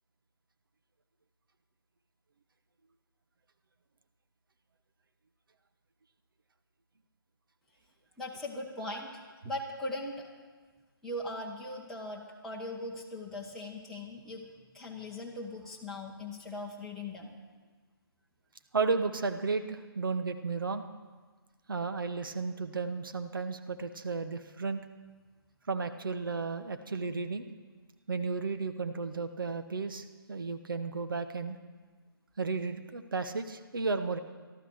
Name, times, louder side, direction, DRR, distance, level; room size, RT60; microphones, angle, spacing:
voice 1, 8.2-10.3 11.0-14.4 14.7-17.3, left 1 dB, ahead, -5 dB, 1.5 m, -39 dB
voice 2, 18.7-20.8 21.7-24.8 25.7-27.4 28.1-31.6 32.4-34.2, right 4 dB, 60° right, 8 dB, 1.2 m, -33 dB
13.5 x 12.5 x 6.6 m, 1.4 s
figure-of-eight pair, 145°, 13 cm